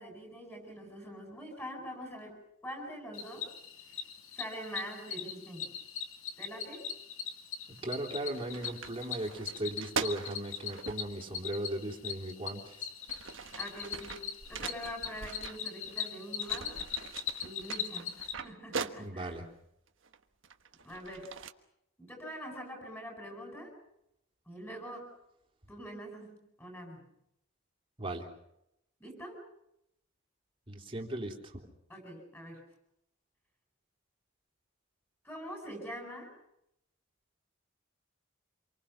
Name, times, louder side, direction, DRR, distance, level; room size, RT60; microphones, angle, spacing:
voice 1, 0.0-3.5 4.3-5.7 6.4-6.8 13.5-16.8 17.4-19.3 20.8-21.4 22.0-23.7 24.5-25.1 25.7-27.1 29.0-29.4 31.9-32.6 35.2-36.3, equal, 10° left, 2 dB, 8.0 m, -44 dB
Cricket, 3.1-18.3, left 8 dB, 70° left, 2.2 m, -40 dB
voice 2, 7.7-12.9 19.0-19.5 28.0-28.3 30.7-31.7, right 1 dB, 25° right, 0 dB, 3.5 m, -37 dB
sound 1, 7.8-8.0 8.3-11.0 12.1-12.2 12.8-16.1 16.4-19.4 20.0-21.5, right 5 dB, 60° right, 1.3 m, -41 dB
28.0 x 24.0 x 5.9 m, 0.79 s
head